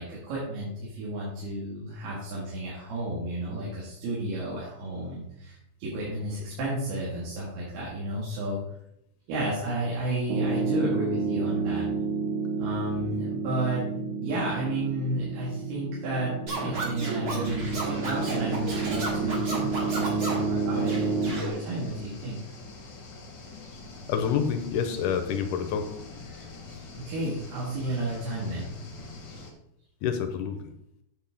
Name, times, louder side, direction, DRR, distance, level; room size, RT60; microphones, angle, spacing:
voice 1, 0.0-8.6 9.3-11.9 12.6-13.9 14.2-22.4 27.0-28.7, right 1 dB, 80° right, -6 dB, 4.0 m, -32 dB
Piano, 10.3-21.3, right 4 dB, 60° right, 2.4 m, -30 dB
Scratching (performance technique), 16.5-20.5 20.9-21.5, right 2 dB, 40° right, 2.6 m, -32 dB
sound 1, 17.6-29.5, left 3 dB, 50° left, 1.2 m, -44 dB
voice 2, 24.1-25.9 30.0-30.6, left 7 dB, 80° left, 7 dB, 1.9 m, -27 dB
9.2 x 7.6 x 3.6 m, 0.79 s
omnidirectional pair, 4.5 m